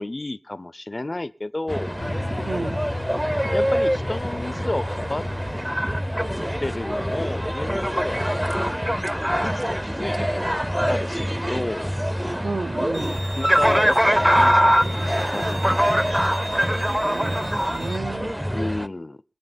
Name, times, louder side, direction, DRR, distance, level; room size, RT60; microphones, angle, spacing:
voice 1, 0.0-1.9 3.5-5.3 6.6-8.3 9.4-10.6 10.9-11.9 13.4-16.2 18.5-19.2, left 2 dB, 35° left, 16 dB, 0.6 m, -31 dB
sound 1, 1.7-18.9, equal, 5° right, 0.6 m, -23 dB
sound 2, 2.0-9.0, left 3 dB, 80° left, 0.9 m, -37 dB
voice 2, 2.4-2.8 12.4-13.2 17.0-18.3, right 3 dB, 90° right, 8 dB, 0.8 m, -31 dB
Bowed string instrument, 12.9-18.0, right 2 dB, 50° right, 0.8 m, -38 dB
26.0 x 8.8 x 4.1 m, 0.36 s
wide cardioid pair, 70°, 0 cm